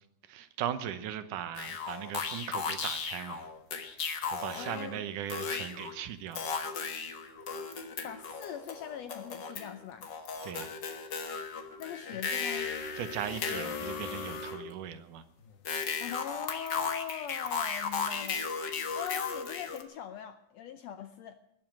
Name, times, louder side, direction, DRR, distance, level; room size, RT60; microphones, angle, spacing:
voice 1, 0.3-3.4 4.3-6.4 10.4-10.7 13.0-15.2, right 10 dB, 80° right, 11 dB, 2.4 m, -38 dB
sound 1, 1.5-5.0 5.3-5.9 6.3-9.7 10.0-14.6 15.6-19.8, left 5 dB, 50° left, 1.5 m, -36 dB
voice 2, 4.5-5.0 8.0-10.1 11.8-12.7 16.0-18.4 18.9-21.4, left 9 dB, 75° left, 10 dB, 1.6 m, -41 dB
20.0 x 7.8 x 9.0 m, 0.76 s
omnidirectional pair, 3.7 m